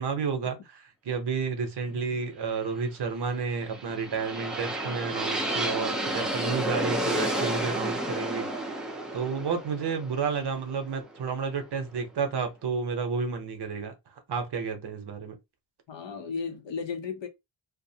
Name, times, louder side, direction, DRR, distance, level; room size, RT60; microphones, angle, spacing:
voice 1, 0.0-14.0 14.3-15.4, right 5 dB, 60° right, 0.7 m, -31 dB
voice 2, 1.8-2.2 15.9-17.3, left 5 dB, 70° left, 0.7 m, -35 dB
sound 1, 3.5-11.5, right 1 dB, ahead, 0.4 m, -31 dB
2.4 x 2.0 x 2.6 m
wide cardioid pair, 170°, 45 cm